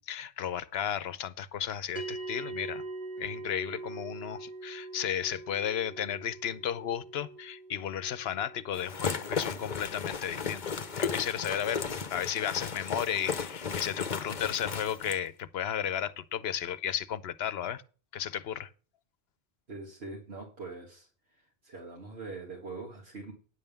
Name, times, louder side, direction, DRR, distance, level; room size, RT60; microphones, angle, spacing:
voice 1, 0.1-2.8 3.2-10.6 11.0-17.8 18.1-18.7, left 9 dB, 80° left, 0.9 m, -34 dB
sound 1, 2.0-12.5, right 3 dB, 60° right, 2.7 m, -44 dB
sound 2, 8.7-15.2, left 6 dB, 50° left, 0.9 m, -35 dB
voice 2, 19.7-21.1 21.6-23.3, right 3 dB, 75° right, 2.2 m, -42 dB
9.9 x 5.5 x 7.0 m
omnidirectional pair, 1.1 m